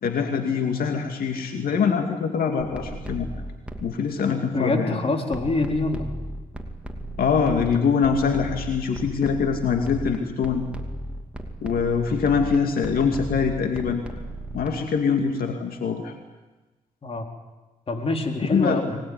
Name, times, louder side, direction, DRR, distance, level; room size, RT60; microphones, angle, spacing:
voice 1, 0.0-3.3 3.8-5.0 7.2-10.6 11.6-14.0 14.5-16.1 18.4-18.8, left 6 dB, 80° left, 4 dB, 2.5 m, -23 dB
sound 1, 2.6-4.0 5.3-14.7, equal, 10° right, 2.7 m, -35 dB
voice 2, 4.5-6.1 17.0-17.3 17.9-19.0, left 2 dB, 40° left, 3 dB, 4.1 m, -25 dB
24.0 x 19.5 x 9.8 m, 1.2 s
cardioid pair, 80°, 15 cm